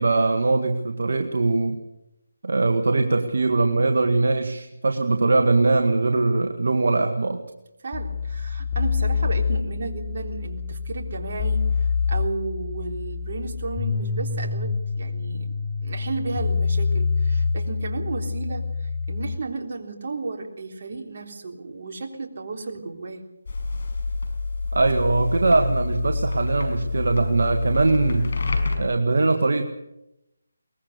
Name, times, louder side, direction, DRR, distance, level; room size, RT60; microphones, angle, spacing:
voice 1, 0.0-1.8 2.4-7.4 24.7-28.3 28.8-29.6, right 3 dB, 65° right, 4 dB, 1.8 m, -21 dB
voice 2, 7.8-23.2, right 3 dB, 45° right, 2 dB, 3.6 m, -33 dB
sound 1, 7.9-19.4, left 5 dB, 15° left, 1.2 m, -26 dB
sound 2, 23.5-28.8, left 3 dB, 55° left, 5.7 m, -27 dB
22.5 x 20.0 x 6.8 m, 0.88 s
figure-of-eight pair, 165°, 0 cm